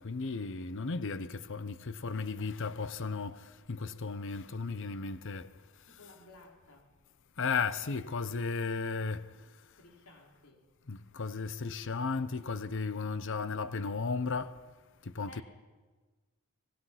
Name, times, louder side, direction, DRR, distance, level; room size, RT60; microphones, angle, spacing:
voice 1, 0.0-5.5 7.4-9.3 10.9-14.6 15.0-15.4, left 4 dB, 60° left, 0.8 m, -35 dB
voice 2, 5.9-6.9 9.8-10.6 15.3-15.4, left 1 dB, 85° left, 3.7 m, -55 dB
25.0 x 18.5 x 5.9 m
head